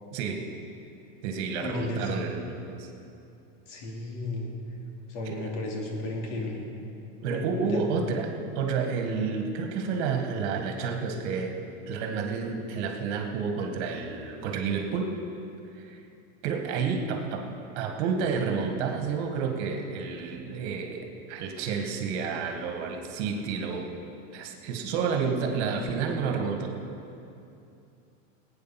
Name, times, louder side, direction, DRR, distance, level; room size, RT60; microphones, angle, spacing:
voice 1, 0.1-0.5 1.2-2.9 5.3-5.5 7.2-15.1 15.7-16.0 16.4-17.5 17.8-23.9 24.3-26.7, right 5 dB, 55° right, 3 dB, 2.0 m, -30 dB
voice 2, 1.6-2.0 3.7-4.5 5.1-6.6 7.3-7.8, left 2 dB, 65° left, 0 dB, 3.0 m, -34 dB
18.5 x 9.1 x 6.0 m, 2.7 s
supercardioid pair, 150°, 39 cm